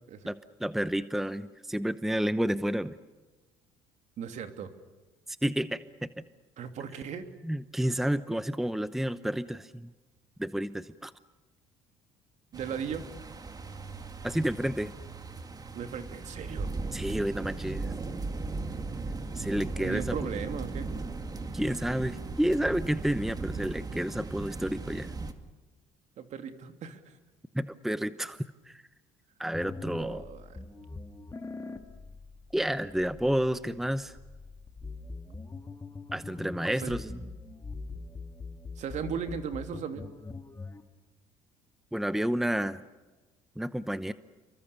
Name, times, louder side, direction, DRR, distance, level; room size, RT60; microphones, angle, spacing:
voice 1, 0.2-3.0 5.4-6.1 7.4-9.9 10.4-11.1 14.2-14.9 16.9-17.9 19.3-20.1 21.5-25.1 27.5-28.8 29.4-30.3 32.5-34.2 36.1-37.2 41.9-42.8 43.6-44.1, equal, ahead, 14 dB, 0.9 m, -30 dB
voice 2, 4.2-4.7 6.6-7.3 12.5-13.0 15.7-16.7 19.8-20.9 26.2-27.2 29.7-30.6 36.8-37.0 38.8-40.1, right 7 dB, 60° right, 7 dB, 2.8 m, -37 dB
sound 1, 12.5-25.3, right 3 dB, 25° right, 2.3 m, -37 dB
sound 2, 29.5-40.8, left 3 dB, 20° left, 2.4 m, -43 dB
29.0 x 23.5 x 7.0 m, 1.2 s
supercardioid pair, 85°, 14 cm